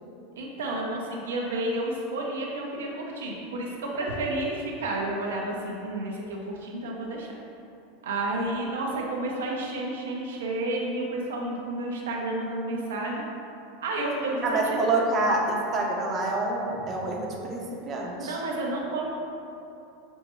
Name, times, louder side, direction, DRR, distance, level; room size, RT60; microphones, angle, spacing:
voice 1, 0.4-7.3 8.0-13.2 13.8-14.8 18.3-19.1, right 2 dB, 85° right, -2 dB, 0.5 m, -31 dB
voice 2, 14.4-18.4, right 2 dB, 35° right, -1 dB, 0.5 m, -27 dB
5.2 x 2.2 x 2.9 m, 2.7 s
hypercardioid pair, 110°, 0 cm